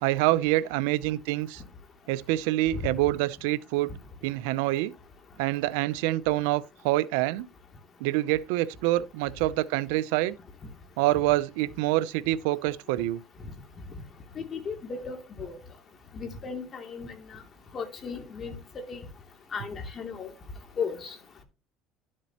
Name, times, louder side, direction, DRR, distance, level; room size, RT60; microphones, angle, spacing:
voice 1, 0.0-1.6 2.1-3.9 4.2-4.9 5.4-7.5 8.0-10.4 11.0-13.2, right 17 dB, 80° right, 0.6 m, -26 dB
voice 2, 14.4-15.6 16.1-17.1 17.7-19.0 19.5-20.3 20.8-21.1, left 5 dB, 35° left, 2.7 m, -35 dB
12.0 x 7.5 x 2.9 m
supercardioid pair, 105°, 0 cm